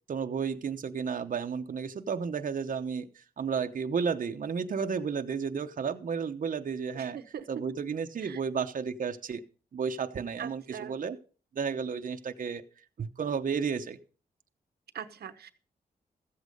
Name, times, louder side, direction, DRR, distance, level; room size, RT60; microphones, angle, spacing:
voice 1, 0.1-7.2 7.5-9.4 9.7-11.2 11.5-12.6 13.0-14.0, right 6 dB, 55° right, 6 dB, 0.8 m, -32 dB
voice 2, 6.9-7.5 8.2-8.4 10.4-10.9 14.9-15.5, right 8 dB, 85° right, 10 dB, 1.0 m, -41 dB
14.0 x 8.2 x 5.3 m, 0.39 s
cardioid pair, 70°, 16 cm